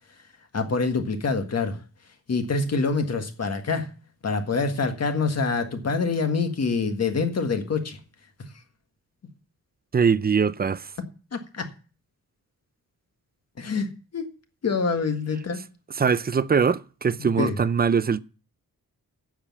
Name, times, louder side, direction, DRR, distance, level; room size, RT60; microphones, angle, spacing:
voice 1, 0.5-1.8 2.3-3.9 4.2-8.0 11.3-11.7 13.6-14.2 14.6-15.6 17.2-17.6, left 4 dB, 45° left, 1.6 m, -26 dB
voice 2, 9.9-10.9 16.0-18.2, right 6 dB, 30° right, 0.4 m, -22 dB
10.0 x 7.4 x 7.1 m
wide cardioid pair, 150°, 34 cm